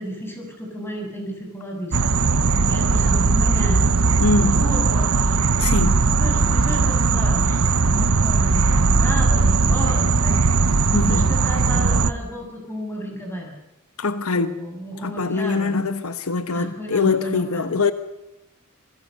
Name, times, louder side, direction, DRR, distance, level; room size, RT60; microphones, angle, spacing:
voice 1, 0.0-2.0 2.7-3.9 4.4-5.4 6.0-10.5 11.1-13.5 14.3-15.8 16.5-17.7, equal, 10° left, 7.6 m, -32 dB
sound 1, 1.9-12.1, right 4 dB, 70° right, 1.0 m, -18 dB
voice 2, 4.2-4.5 5.6-6.0 10.9-11.3 14.0-14.6 15.0-17.9, left 3 dB, 75° left, 1.2 m, -23 dB
27.5 x 21.5 x 6.7 m
head